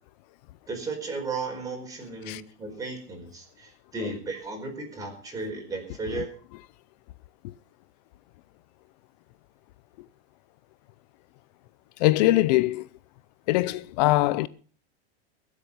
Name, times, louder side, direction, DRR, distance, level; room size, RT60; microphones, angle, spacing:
voice 1, 0.7-6.3, right 3 dB, 10° right, 4.7 m, -35 dB
voice 2, 12.0-12.9 13.5-14.5, left 17 dB, 40° left, 0.6 m, -22 dB
22.5 x 8.2 x 5.5 m
supercardioid pair, 160°, 33 cm